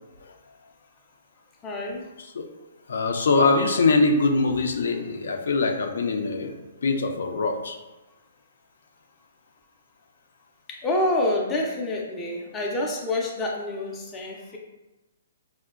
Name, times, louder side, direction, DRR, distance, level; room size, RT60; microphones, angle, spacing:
voice 1, 1.6-2.1 10.7-14.6, left 1 dB, 15° left, -2 dB, 0.4 m, -27 dB
voice 2, 2.9-6.5 6.8-7.8, left 3 dB, 75° left, 4 dB, 0.5 m, -22 dB
4.4 x 2.1 x 2.4 m, 1.0 s
hypercardioid pair, 155°, 0 cm